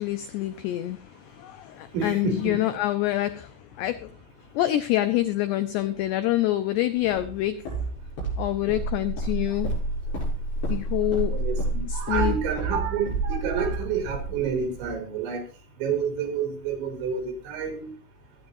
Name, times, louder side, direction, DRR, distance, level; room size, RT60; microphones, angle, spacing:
voice 1, 0.0-4.1 4.5-7.6 8.4-9.7 10.7-11.4 11.9-12.4, left 14 dB, 85° left, 2.3 m, -26 dB
voice 2, 1.9-2.6 11.3-15.4 15.8-17.9, right 6 dB, 70° right, 5.4 m, -29 dB
Walk footsteps, 7.0-14.9, right 2 dB, 60° left, 9.8 m, -30 dB
22.5 x 9.0 x 2.6 m
omnidirectional pair, 5.6 m